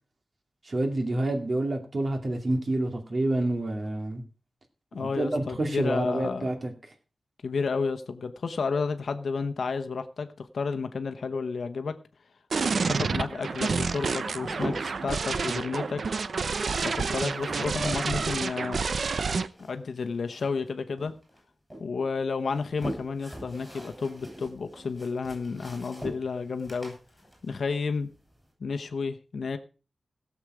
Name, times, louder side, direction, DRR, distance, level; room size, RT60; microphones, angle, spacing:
voice 1, 0.6-4.2 5.0-6.7, right 1 dB, 45° right, 4 dB, 2.6 m, -28 dB
voice 2, 4.9-6.5 7.4-11.9 12.8-16.0 16.8-18.8 19.6-21.1 21.8-26.9 27.4-28.1 28.6-29.6, left 4 dB, 75° left, 8 dB, 1.0 m, -31 dB
sound 1, 12.5-19.5, right 4 dB, 70° right, 0.7 m, -29 dB
sound 2, 13.8-15.1 16.2-18.6 18.9-20.7 21.0-21.8 22.4-28.4, right 1 dB, 10° right, 7.7 m, -42 dB
17.0 x 7.3 x 5.0 m, 0.36 s
wide cardioid pair, 115°, 0 cm